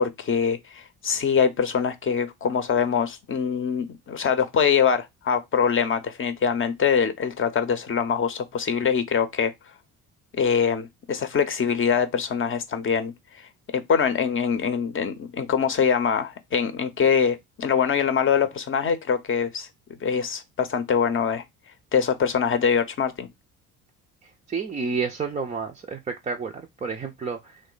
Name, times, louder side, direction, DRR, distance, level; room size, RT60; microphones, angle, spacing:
voice 1, 0.0-9.5 10.4-13.1 13.7-19.7 20.0-21.4 21.9-23.3, left 6 dB, 30° left, 0.7 m, -23 dB
voice 2, 24.2-27.6, right 5 dB, 20° right, 0.4 m, -30 dB
3.1 x 2.1 x 3.9 m
hypercardioid pair, 50°, 42 cm